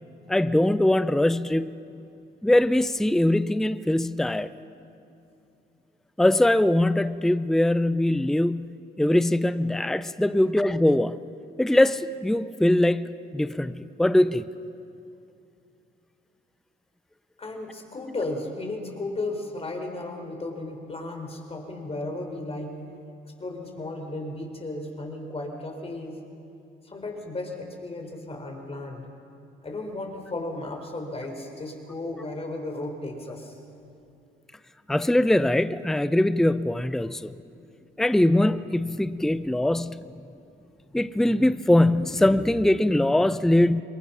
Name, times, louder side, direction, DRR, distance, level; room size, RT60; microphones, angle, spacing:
voice 1, 0.3-1.7 2.4-4.5 6.2-11.2 11.6-14.5 34.9-37.3 38.0-40.0 40.9-43.8, left 1 dB, ahead, 13 dB, 0.6 m, -22 dB
voice 2, 17.4-22.8 23.4-26.2 26.8-29.1 29.6-33.6, left 2 dB, 30° left, 3 dB, 4.3 m, -34 dB
27.0 x 22.5 x 5.7 m, 2.7 s
cardioid pair, 90°, 20 cm